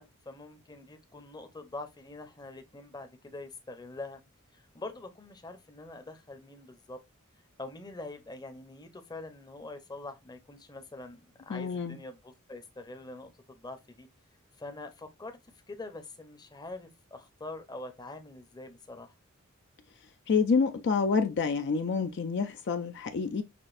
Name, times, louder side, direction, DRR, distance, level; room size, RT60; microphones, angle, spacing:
voice 1, 0.0-4.2 4.5-7.0 7.6-14.1 14.6-15.4 15.7-19.1, left 2 dB, 20° left, 0.7 m, -44 dB
voice 2, 11.5-12.0 20.3-23.4, left 5 dB, 55° left, 0.4 m, -28 dB
6.0 x 2.5 x 2.5 m
head